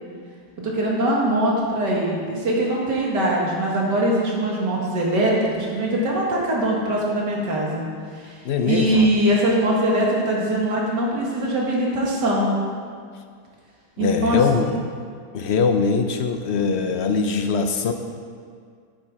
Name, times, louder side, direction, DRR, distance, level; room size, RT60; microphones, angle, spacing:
voice 1, 0.6-7.8 8.1-8.4 8.6-12.5 14.0-14.4, right 1 dB, 85° right, -3 dB, 2.5 m, -22 dB
voice 2, 8.4-9.1 14.0-14.8 15.3-17.9, left 5 dB, 75° left, 6 dB, 0.6 m, -22 dB
9.0 x 8.8 x 4.8 m, 2.1 s
omnidirectional pair, 1.8 m